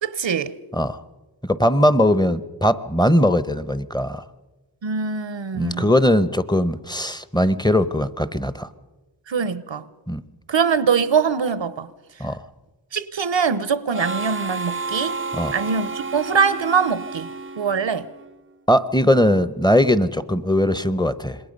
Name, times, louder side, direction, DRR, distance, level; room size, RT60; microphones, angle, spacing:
voice 1, 0.0-0.5 4.8-5.9 9.3-9.8 10.5-11.9 12.9-15.2 15.5-17.3 17.6-18.1, right 6 dB, 80° right, 0.9 m, -22 dB
voice 2, 1.4-4.2 5.6-8.7 10.1-10.2 12.2-12.4 15.3-15.5 18.7-21.4, left 1 dB, 10° left, 0.9 m, -20 dB
Harmonica, 13.9-18.4, right 3 dB, 30° right, 0.6 m, -31 dB
26.5 x 21.0 x 5.4 m
wide cardioid pair, 50°, 44 cm